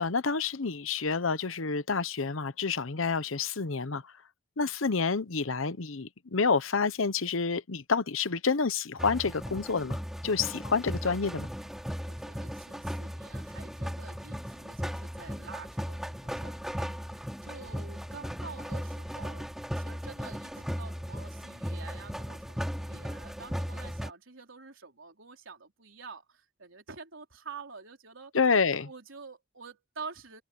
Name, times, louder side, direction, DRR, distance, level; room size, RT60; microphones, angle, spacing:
voice 1, 0.0-4.0 4.6-11.5 28.3-28.9, left 5 dB, 75° left, 0.9 m, -28 dB
sound 1, 9.0-24.1, equal, ahead, 3.1 m, -37 dB
voice 2, 12.1-28.3 28.8-30.4, right 4 dB, 70° right, 4.4 m, -48 dB
head